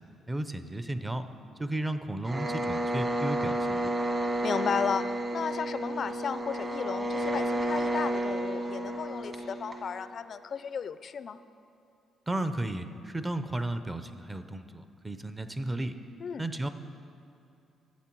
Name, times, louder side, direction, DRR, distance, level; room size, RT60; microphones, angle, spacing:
voice 1, 0.3-1.3 1.6-3.9 12.3-16.0 16.4-16.7, right 1 dB, 15° right, 10 dB, 0.6 m, -33 dB
sound 1, 2.2-10.0, right 1 dB, 30° right, 1.6 m, -31 dB
voice 2, 4.4-5.1 5.3-11.4 16.2-16.4, left 6 dB, 50° left, 13 dB, 0.4 m, -34 dB
12.5 x 8.0 x 4.6 m, 2.6 s
cardioid pair, 90°, 0 cm